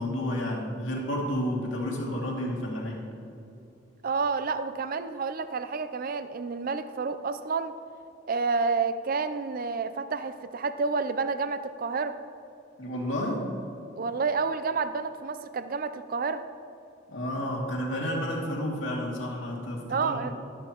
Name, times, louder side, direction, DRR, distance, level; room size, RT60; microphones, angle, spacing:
voice 1, 0.0-3.1 12.8-13.5 17.1-20.3, equal, 80° left, -2 dB, 2.4 m, -31 dB
voice 2, 4.0-7.7 8.3-12.1 14.0-16.4 19.9-20.3, right 4 dB, 50° right, 11 dB, 0.5 m, -29 dB
14.0 x 12.5 x 3.0 m, 2.7 s
head